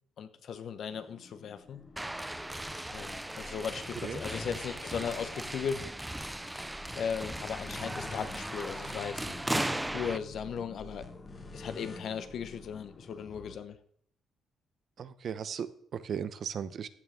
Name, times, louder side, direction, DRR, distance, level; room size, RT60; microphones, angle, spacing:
voice 1, 0.2-1.8 2.9-5.8 6.9-11.1 11.5-13.8, left 7 dB, 65° left, 11 dB, 1.1 m, -37 dB
sound 1, 0.9-13.6, left 2 dB, 35° left, 1.5 m, -48 dB
sound 2, 2.0-10.2, right 1 dB, 10° right, 0.4 m, -37 dB
voice 2, 15.0-16.9, right 7 dB, 60° right, 13 dB, 0.8 m, -37 dB
15.0 x 9.0 x 3.7 m, 0.63 s
cardioid pair, 90°, 0 cm